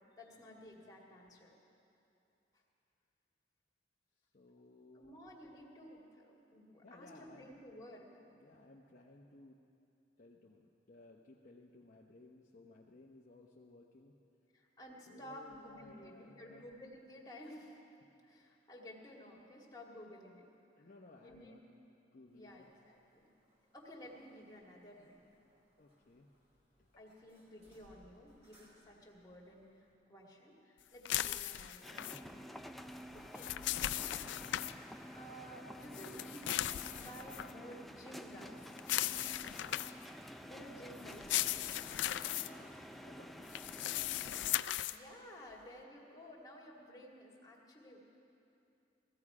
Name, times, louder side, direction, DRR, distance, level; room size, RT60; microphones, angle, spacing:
voice 1, 0.2-1.6 4.9-8.1 14.5-17.8 18.2-20.5 20.8-20.9 21.2-21.6 22.3-23.3 23.7-25.3 27.0-32.5 32.9-33.5 35.1-38.8 40.4-41.8 44.8-48.0, equal, 20° left, -3 dB, 2.1 m, -54 dB
voice 2, 4.3-5.2 6.8-7.6 8.3-9.6 10.2-14.1 15.1-16.6 20.8-21.7 22.1-22.7 25.8-26.3 26.8-26.9 42.3-43.5 43.8-44.3, left 2 dB, 45° left, -2 dB, 0.8 m, -59 dB
sound 1, 22.3-29.9, equal, 35° right, 3.7 m, -70 dB
sound 2, 31.1-32.2 33.2-34.7 35.9-37.5 38.8-40.1 41.1-42.5 43.5-45.0, left 13 dB, 70° left, 0.4 m, -37 dB
sound 3, 31.8-44.6, equal, ahead, 0.4 m, -50 dB
18.0 x 14.5 x 4.9 m, 2.8 s
head